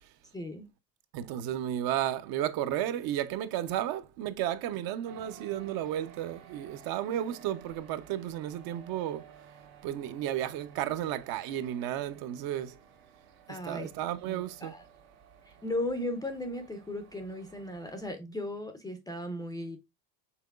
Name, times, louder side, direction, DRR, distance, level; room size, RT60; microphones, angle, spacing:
voice 1, 0.3-0.7 7.1-7.4 13.5-13.9 14.3-14.8 15.5-19.8, left 1 dB, 10° left, 0.4 m, -36 dB
voice 2, 1.1-9.3 9.8-12.8 13.5-14.7, right 11 dB, 55° right, 0.6 m, -33 dB
sound 1, 5.0-18.1, right 8 dB, 85° right, 1.7 m, -55 dB
5.8 x 3.7 x 2.3 m
cardioid pair, 140°, 43 cm